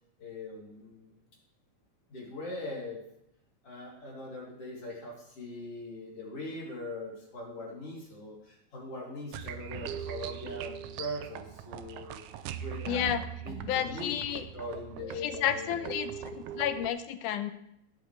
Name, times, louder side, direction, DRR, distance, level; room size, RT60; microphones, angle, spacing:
voice 1, 0.2-1.1 2.1-3.0 3.6-12.2 12.6-15.9, left 1 dB, 50° left, -5 dB, 4.2 m, -41 dB
sound 1, 9.3-16.9, right 9 dB, 85° right, 2.1 m, -41 dB
voice 2, 12.8-13.2 13.6-14.5 15.2-17.5, left 10 dB, 90° left, 9 dB, 2.3 m, -31 dB
17.5 x 8.0 x 3.4 m, 0.77 s
omnidirectional pair, 3.5 m